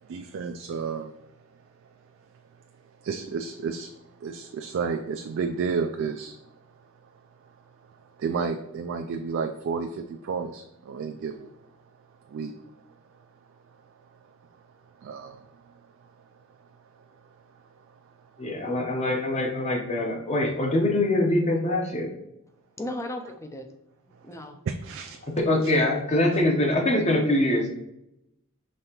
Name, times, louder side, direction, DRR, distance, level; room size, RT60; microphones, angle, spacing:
voice 1, 0.0-1.1 3.0-3.9 4.2-6.4 6.8-6.9 8.2-11.5 12.3-12.5 15.0-15.8 17.9-18.0 18.4-18.5 24.7-25.3 25.6-25.7, right 5 dB, 60° right, 5 dB, 0.3 m, -31 dB
voice 2, 18.4-22.1 25.3-27.7, left 1 dB, 30° left, 2 dB, 0.8 m, -24 dB
voice 3, 22.8-23.7 24.3-24.6, left 1 dB, 15° left, 7 dB, 0.4 m, -35 dB
5.4 x 3.3 x 2.9 m, 0.85 s
head